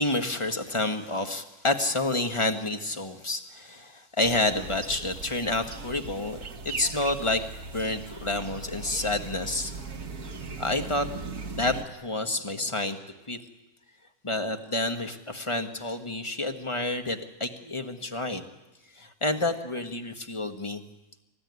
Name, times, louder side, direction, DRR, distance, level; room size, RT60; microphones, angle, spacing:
voice 1, 0.0-7.4 7.7-9.7 10.6-11.1 11.5-13.0 13.3-13.4 14.2-18.4 18.9-20.8, left 2 dB, 20° left, 6 dB, 1.5 m, -29 dB
sound 1, 4.2-11.8, right 4 dB, 70° right, 1.8 m, -39 dB
28.0 x 15.5 x 9.6 m, 1.0 s
omnidirectional pair, 1.6 m